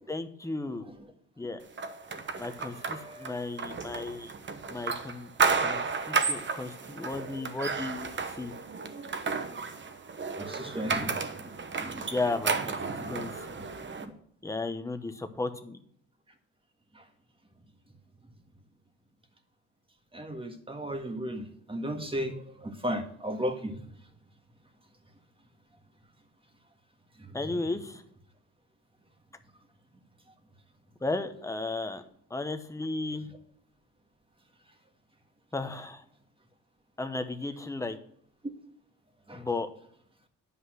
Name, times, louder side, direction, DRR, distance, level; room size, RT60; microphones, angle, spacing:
voice 1, 0.1-0.9 1.4-1.6 2.4-4.3 4.7-5.3 5.6-8.1 8.3-8.5 12.1-12.8 13.1-13.6 14.4-15.8 27.3-28.0 31.0-32.0 32.3-33.3 35.5-36.0 37.0-38.0 39.3-39.7, left 2 dB, 10° left, 8 dB, 1.0 m, -34 dB
sound 1, 1.8-14.0, right 4 dB, 40° right, 1.1 m, -32 dB
voice 2, 2.7-3.4 10.4-12.1 12.9-13.1 13.6-13.7 14.0-14.1 16.9-17.0 20.1-23.8 27.2-27.4 39.3-39.5, equal, 20° right, 5 dB, 1.6 m, -36 dB
9.9 x 5.5 x 6.4 m, 0.65 s
cardioid pair, 90°, 30 cm